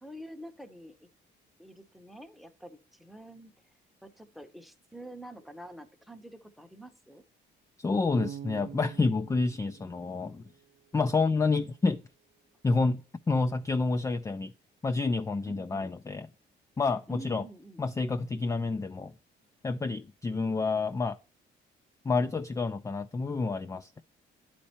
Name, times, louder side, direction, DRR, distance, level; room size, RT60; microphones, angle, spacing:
voice 1, 0.0-1.1 1.6-3.5 4.0-7.2 15.5-16.0 17.1-17.8, right 1 dB, ahead, 0.7 m, -47 dB
voice 2, 7.8-10.4 10.9-12.0 12.6-14.5 14.8-16.3 16.8-17.4 17.8-19.1 19.6-21.2 22.0-24.0, left 3 dB, 15° left, 0.3 m, -29 dB
Bass guitar, 8.2-11.2, right 9 dB, 40° right, 0.5 m, -46 dB
11.0 x 4.4 x 2.8 m
cardioid pair, 90°, 20 cm